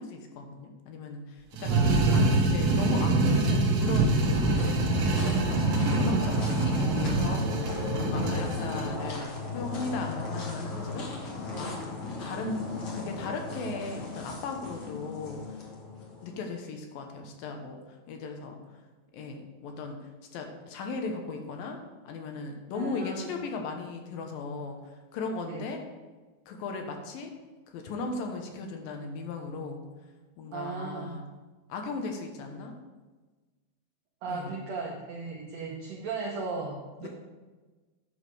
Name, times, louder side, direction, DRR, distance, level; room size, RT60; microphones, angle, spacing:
voice 1, 0.0-1.8 2.1-4.2 4.5-7.4 8.0-11.1 11.5-11.7 12.2-15.7 16.2-18.6 19.1-20.0 20.3-21.8 22.0-25.8 26.5-27.4 27.7-29.8 30.4-31.3 31.7-32.8 34.3-34.6 37.0-37.1, left 3 dB, 75° left, 4 dB, 2.6 m, -37 dB
sound 1, 1.5-8.9, right 2 dB, 65° right, 1.6 m, -25 dB
voice 2, 1.7-2.3 4.6-4.8 8.1-8.4 11.5-11.8 22.7-23.3 25.5-25.7 30.5-31.1 34.2-37.1, right 4 dB, 80° right, -1 dB, 1.5 m, -37 dB
sound 2, 3.2-16.5, left 4 dB, 50° left, 1.6 m, -37 dB
9.2 x 6.4 x 4.8 m, 1.3 s
omnidirectional pair, 4.3 m